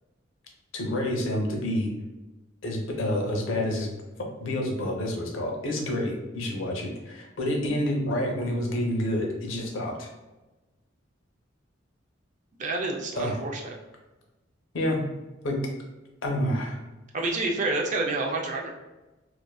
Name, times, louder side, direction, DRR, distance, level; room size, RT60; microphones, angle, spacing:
voice 1, 0.7-1.9 2.6-3.9 4.4-10.1 13.1-13.4 14.7-15.0 15.4-15.6 16.2-16.8, left 1 dB, 80° left, 0 dB, 0.6 m, -28 dB
voice 2, 12.6-13.8 17.1-18.7, right 2 dB, 40° right, 1 dB, 0.4 m, -28 dB
2.4 x 2.4 x 2.3 m, 1.1 s
head